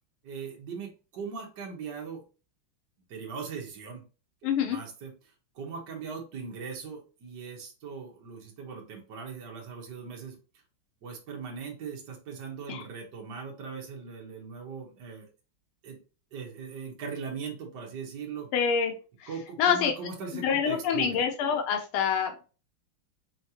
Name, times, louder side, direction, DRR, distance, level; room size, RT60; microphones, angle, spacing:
voice 1, 0.2-2.2 3.1-4.0 4.6-5.1 5.5-10.4 11.0-15.3 15.8-16.0 16.3-18.5 19.3-21.2, right 5 dB, 60° right, 0 dB, 1.7 m, -39 dB
voice 2, 4.4-4.8 12.7-12.8 18.5-18.9 19.2-19.3 19.6-19.9 20.4-22.5, left 7 dB, 90° left, 4 dB, 1.5 m, -26 dB
4.9 x 3.1 x 2.8 m, 0.34 s
omnidirectional pair, 2.3 m